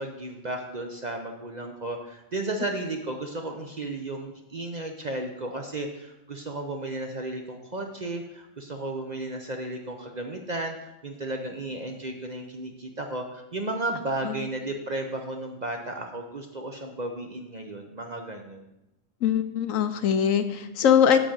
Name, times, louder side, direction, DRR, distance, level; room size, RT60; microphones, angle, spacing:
voice 1, 0.0-10.8 11.0-18.6, right 2 dB, 40° right, 3 dB, 0.7 m, -34 dB
voice 2, 19.2-21.2, left 8 dB, 75° left, 10 dB, 1.1 m, -22 dB
9.9 x 3.8 x 7.2 m, 0.92 s
omnidirectional pair, 1.4 m